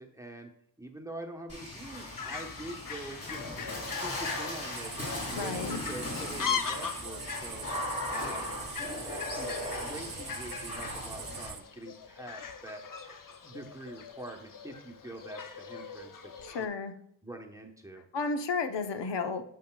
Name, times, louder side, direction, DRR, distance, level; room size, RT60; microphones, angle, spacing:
voice 1, 0.0-3.6 4.0-8.6 9.0-12.8 13.4-16.7 17.2-18.1, right 1 dB, 10° right, 2 dB, 1.0 m, -45 dB
Water / Splash splatter, 1.5-11.5, left 1 dB, 35° left, 2.7 m, -38 dB
Fowl, 1.8-16.7, left 6 dB, 50° left, 0.7 m, -40 dB
sound 1, 4.7-11.6, right 7 dB, 60° right, 0.7 m, -43 dB
voice 2, 5.3-5.8 16.4-16.9 18.1-19.4, left 4 dB, 80° left, 7 dB, 0.9 m, -32 dB
9.1 x 7.6 x 2.3 m, 0.68 s
wide cardioid pair, 105°, 42 cm